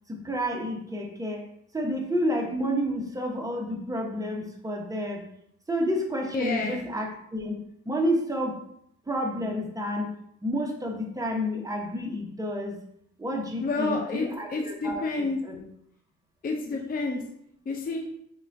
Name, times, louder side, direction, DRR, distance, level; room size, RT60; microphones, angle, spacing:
voice 1, 0.1-1.4 1.7-5.3 5.7-7.6 7.8-8.6 9.1-10.1 10.4-12.8 13.2-15.6, equal, 10° right, 1 dB, 1.0 m, -30 dB
voice 2, 6.3-6.9 13.6-15.4 16.4-17.2 17.7-18.1, left 3 dB, 30° left, 2 dB, 0.6 m, -29 dB
5.1 x 2.5 x 3.4 m, 0.72 s
cardioid pair, 90°, 30 cm